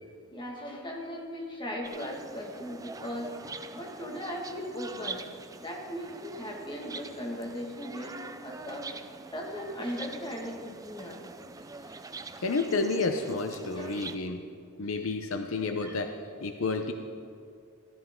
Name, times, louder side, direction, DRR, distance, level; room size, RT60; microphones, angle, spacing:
voice 1, 0.0-3.3 3.7-5.3 5.6-9.0 9.3-11.2 13.7-13.9 15.8-15.9, equal, 25° left, -1 dB, 1.8 m, -38 dB
sound 1, 1.8-14.2, right 4 dB, 15° right, 0.4 m, -44 dB
voice 2, 12.4-14.5 14.8-16.1 16.4-16.9, left 3 dB, 70° left, 6 dB, 0.6 m, -30 dB
14.0 x 13.0 x 3.7 m, 2.3 s
head